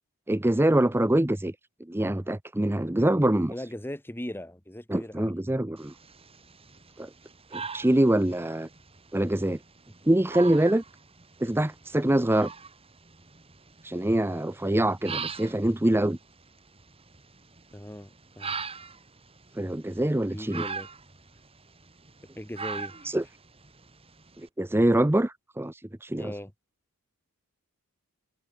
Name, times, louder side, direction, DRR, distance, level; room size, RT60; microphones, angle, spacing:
voice 1, 0.3-1.5 1.9-3.5 4.9-5.9 7.0-7.1 7.5-8.7 9.1-9.6 10.1-10.8 11.4-12.5 13.8-16.2 19.6-20.6 23.0-23.2 24.6-26.3, right 1 dB, 10° right, 0.6 m, -24 dB
voice 2, 3.5-5.3 17.7-18.6 20.3-20.9 22.4-23.1 26.2-26.5, left 1 dB, 10° left, 2.0 m, -39 dB
sound 1, 5.8-24.5, right 5 dB, 25° right, 3.1 m, -42 dB
head